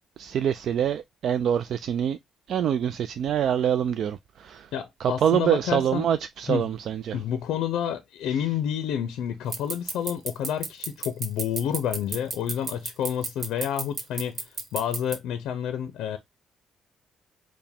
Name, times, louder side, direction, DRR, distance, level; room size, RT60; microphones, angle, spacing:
voice 1, 0.2-2.2 2.5-4.7 5.0-7.2, right 9 dB, 65° right, 0.3 m, -25 dB
voice 2, 4.7-6.1 6.5-6.7 7.1-16.2, left 9 dB, 85° left, 0.5 m, -29 dB
sound 1, 9.5-15.1, right 3 dB, 50° right, 1.1 m, -30 dB
4.7 x 2.1 x 3.4 m
cardioid pair, 90°, 0 cm